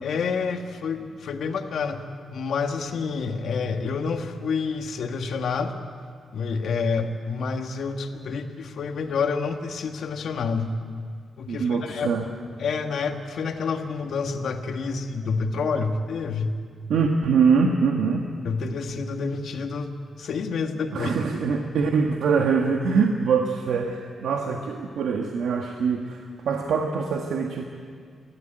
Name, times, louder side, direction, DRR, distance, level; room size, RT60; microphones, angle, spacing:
voice 1, 0.0-2.0 2.3-5.7 6.3-10.7 11.4-12.1 12.6-16.6 18.4-19.9 20.2-21.1, left 5 dB, 65° left, 5 dB, 1.7 m, -28 dB
voice 2, 11.5-12.3 16.9-18.3 20.9-27.6, right 5 dB, 90° right, 2 dB, 1.5 m, -23 dB
29.0 x 13.0 x 9.0 m, 2.1 s
wide cardioid pair, 155°, 0 cm